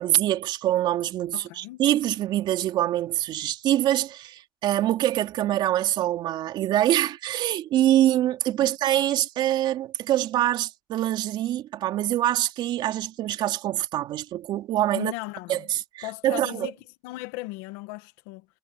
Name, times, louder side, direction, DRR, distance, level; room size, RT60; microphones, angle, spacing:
voice 1, 0.0-15.1 15.5-16.7, right 13 dB, 65° right, 3.3 m, -25 dB
voice 2, 1.3-1.8 8.6-8.7 14.9-15.7 16.0-16.7 17.0-18.5, left 20 dB, 85° left, 1.8 m, -37 dB
supercardioid pair, 80°, 9 cm